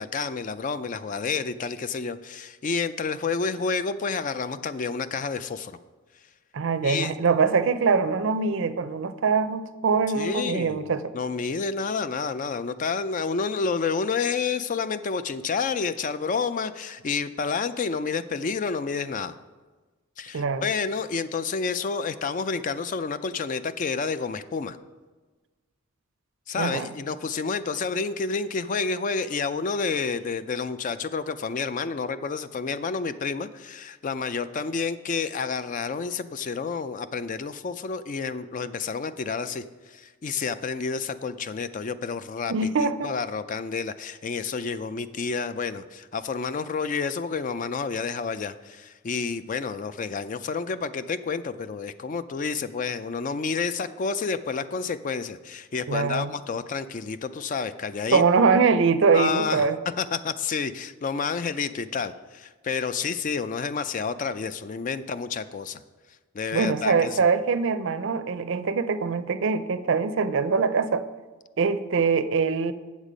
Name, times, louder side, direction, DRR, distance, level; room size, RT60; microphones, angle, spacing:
voice 1, 0.0-5.8 6.8-7.1 10.1-10.8 11.1-19.3 20.2-24.8 26.5-42.5 42.8-58.2 59.1-59.7 60.0-65.8 66.3-67.2, left 5 dB, 40° left, 13 dB, 0.3 m, -29 dB
voice 2, 6.5-11.0 20.3-20.7 26.6-26.9 42.5-43.2 55.9-56.3 58.1-59.8 66.5-71.0 71.6-72.7, right 5 dB, 60° right, 12 dB, 0.5 m, -23 dB
8.3 x 7.2 x 5.0 m, 1.3 s
head